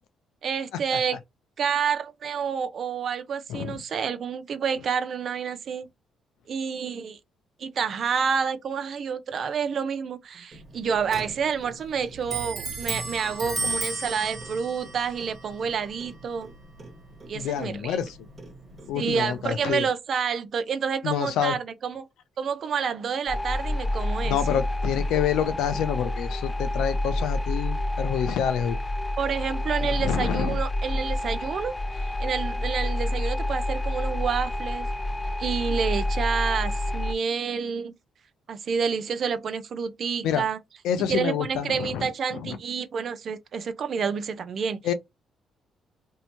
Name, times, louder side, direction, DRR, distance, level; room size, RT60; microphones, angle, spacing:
voice 1, 0.4-1.2 1.6-5.9 6.5-7.2 7.6-16.5 17.3-18.0 19.0-22.1 22.4-24.6 29.2-34.9 35.4-37.9 38.5-40.6 41.1-44.8, right 6 dB, 55° right, 0.5 m, -29 dB
voice 2, 3.5-3.8 17.3-18.2 18.9-19.9 21.0-21.6 24.2-28.8 29.8-30.6 40.2-40.4 40.8-42.1 42.3-42.6 44.8-44.9, left 9 dB, 90° left, 0.5 m, -27 dB
Clock, 10.5-19.8, right 3 dB, 40° right, 1.1 m, -36 dB
sound 1, 23.3-37.1, left 1 dB, 25° left, 0.4 m, -28 dB
2.7 x 2.2 x 2.9 m
cardioid pair, 90°, 0 cm